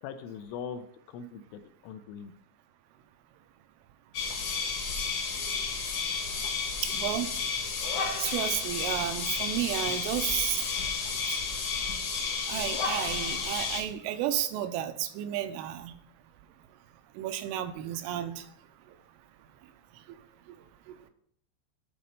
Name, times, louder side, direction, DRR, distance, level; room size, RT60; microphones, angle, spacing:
voice 1, 0.0-2.3, left 7 dB, 85° left, 9 dB, 2.9 m, -41 dB
sound 1, 4.1-13.8, left 5 dB, 65° left, 1.9 m, -32 dB
voice 2, 6.8-7.3 8.2-10.6 11.3-11.4 12.5-15.9 17.2-18.4, right 12 dB, 85° right, 8 dB, 3.1 m, -32 dB
8.6 x 4.1 x 5.4 m, 0.68 s
omnidirectional pair, 5.8 m